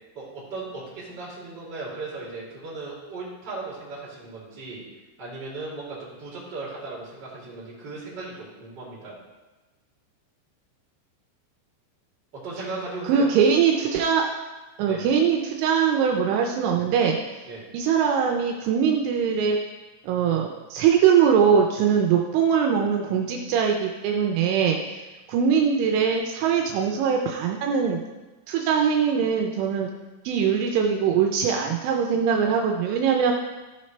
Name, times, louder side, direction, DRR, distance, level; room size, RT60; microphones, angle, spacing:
voice 1, 0.1-4.8 5.2-9.1 12.3-13.3 14.8-15.0 17.4-17.6, right 3 dB, 30° right, -7 dB, 2.6 m, -37 dB
voice 2, 13.1-14.3 14.8-17.2 17.7-19.6 20.0-28.0 28.5-29.9 30.2-33.3, right 7 dB, 80° right, 1 dB, 3.0 m, -22 dB
13.5 x 5.4 x 3.2 m, 1.2 s
omnidirectional pair, 5.7 m